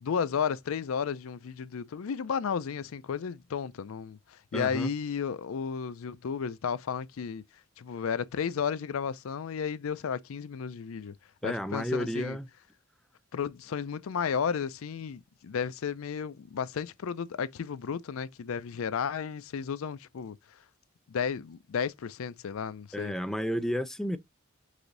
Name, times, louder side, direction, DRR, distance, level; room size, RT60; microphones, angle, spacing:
voice 1, 0.0-7.4 7.8-11.1 11.4-12.4 13.3-20.4 21.1-23.1, left 6 dB, 75° left, 0.4 m, -33 dB
voice 2, 4.5-4.9 11.4-12.5 22.9-24.2, equal, ahead, 0.4 m, -32 dB
4.9 x 2.6 x 3.8 m
head